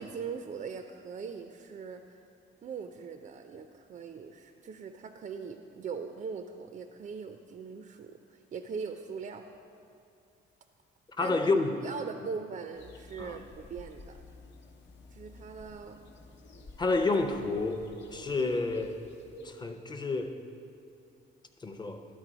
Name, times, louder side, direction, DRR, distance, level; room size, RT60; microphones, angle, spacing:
voice 1, 0.0-2.2 2.6-9.4 11.2-11.4 11.8-14.2 15.1-16.0, right 5 dB, 40° right, 6 dB, 0.4 m, -41 dB
voice 2, 11.2-11.8 13.2-13.4 16.8-19.0 19.4-20.4 21.6-22.0, left 3 dB, 20° left, 6 dB, 0.6 m, -29 dB
sound 1, 12.8-19.5, left 2 dB, 65° left, 0.8 m, -50 dB
11.5 x 4.0 x 5.0 m, 2.5 s
cardioid pair, 90°, 20 cm